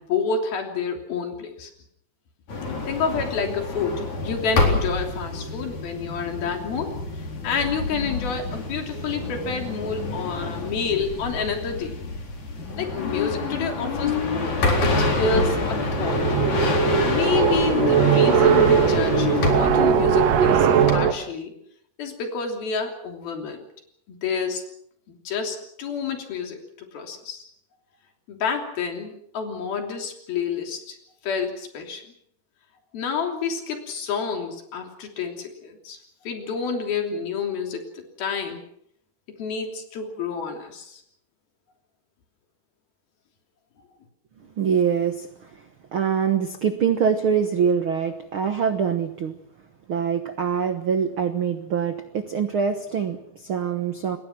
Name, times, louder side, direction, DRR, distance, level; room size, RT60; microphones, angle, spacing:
voice 1, 0.0-1.7 2.9-12.0 12.8-14.5 14.8-16.2 17.1-21.5 22.0-23.7 24.1-24.6 25.1-27.4 28.3-31.0 31.2-32.0 32.9-36.0 36.2-38.6 39.4-41.0, left 5 dB, 70° left, 4 dB, 5.0 m, -29 dB
wind bura, 2.5-20.9, left 3 dB, 50° left, 5.3 m, -27 dB
sound 1, 15.6-21.1, right 8 dB, 60° right, 1.9 m, -20 dB
voice 2, 44.6-45.5 45.9-49.4 49.9-54.2, right 7 dB, 80° right, 8 dB, 1.1 m, -24 dB
27.5 x 21.5 x 6.1 m, 0.71 s
omnidirectional pair, 4.5 m